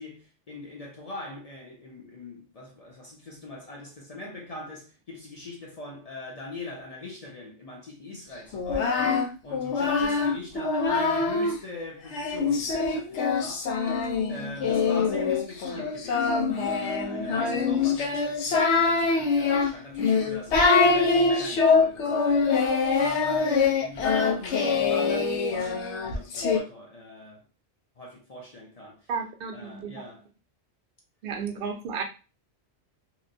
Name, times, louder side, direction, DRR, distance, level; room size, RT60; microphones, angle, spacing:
voice 1, 0.0-13.7 14.3-22.7 23.0-27.5 28.0-29.1 29.5-30.3, left 2 dB, 45° left, 0.5 m, -42 dB
Singing, 8.5-11.6 12.1-26.6, left 4 dB, 90° left, 0.9 m, -24 dB
voice 2, 29.1-29.9 31.2-32.0, right 6 dB, 65° right, 0.7 m, -32 dB
2.8 x 2.1 x 2.6 m
omnidirectional pair, 1.1 m